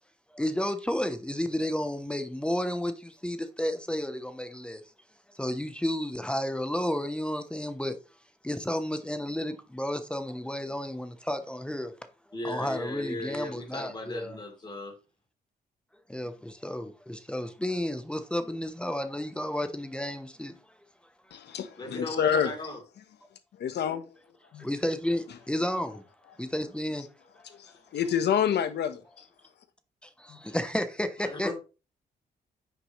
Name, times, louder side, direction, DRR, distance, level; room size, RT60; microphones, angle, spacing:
voice 1, 0.3-4.8 5.3-8.0 8.4-11.9 12.4-14.4 16.1-20.5 24.6-26.0 26.4-27.1 30.0-31.5, left 1 dB, 5° left, 0.8 m, -32 dB
voice 2, 12.3-14.9 21.8-22.8 31.2-31.5, left 2 dB, 25° left, 3.4 m, -37 dB
voice 3, 21.3-22.5 23.6-24.0 24.5-24.7 27.6-29.2 30.3-30.5, left 8 dB, 80° left, 1.3 m, -28 dB
9.6 x 6.1 x 3.2 m
wide cardioid pair, 140°, 17 cm